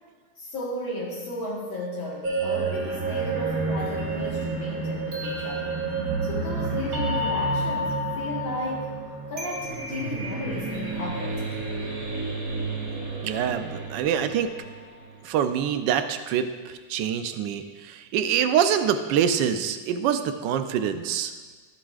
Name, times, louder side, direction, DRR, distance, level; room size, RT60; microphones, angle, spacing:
voice 1, 0.4-5.8 6.2-8.9 9.3-11.4, left 1 dB, 70° left, -5 dB, 2.3 m, -34 dB
sound 1, 2.2-15.2, right 2 dB, 45° right, 1.8 m, -30 dB
voice 2, 13.2-14.5 15.2-21.3, right 8 dB, 70° right, 9 dB, 1.1 m, -25 dB
14.0 x 7.4 x 2.4 m, 1.4 s
omnidirectional pair, 2.3 m